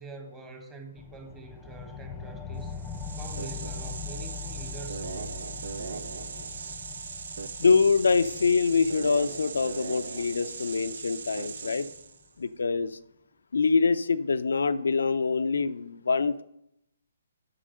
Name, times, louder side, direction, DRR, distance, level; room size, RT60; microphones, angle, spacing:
voice 1, 0.0-2.7 3.2-5.1, right 4 dB, 15° right, 4 dB, 1.4 m, -44 dB
sound 1, 1.0-12.0, left 6 dB, 10° left, 0.7 m, -42 dB
sound 2, 2.7-12.3, right 5 dB, 65° right, 0.6 m, -39 dB
voice 2, 7.6-11.9 12.4-12.9 13.5-16.4, left 4 dB, 75° left, 11 dB, 0.4 m, -24 dB
7.5 x 5.9 x 6.5 m, 0.81 s
hypercardioid pair, 140°, 0 cm